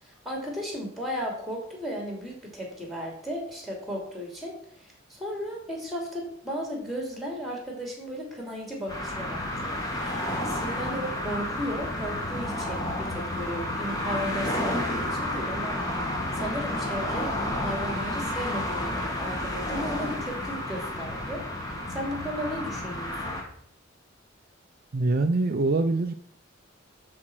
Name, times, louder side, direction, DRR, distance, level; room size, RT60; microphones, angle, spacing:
voice 1, 0.0-4.5 4.8-23.4, equal, ahead, 0 dB, 2.8 m, -35 dB
sound 1, 8.9-23.4, left 1 dB, 20° left, 1.9 m, -31 dB
voice 2, 24.9-26.1, right 2 dB, 50° right, 8 dB, 0.5 m, -24 dB
12.0 x 4.4 x 6.1 m, 0.67 s
head